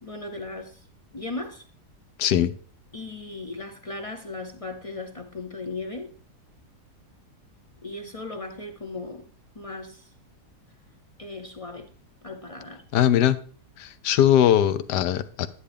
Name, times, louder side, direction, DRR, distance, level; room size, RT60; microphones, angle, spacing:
voice 1, 0.0-0.9 1.1-1.6 2.9-6.1 7.8-9.3 9.6-10.1 11.2-11.9 12.2-12.8, left 3 dB, 45° left, 0.4 m, -37 dB
voice 2, 2.2-2.5 12.9-13.4 13.8-15.5, left 11 dB, 85° left, 1.3 m, -20 dB
10.0 x 9.7 x 3.4 m
omnidirectional pair, 1.7 m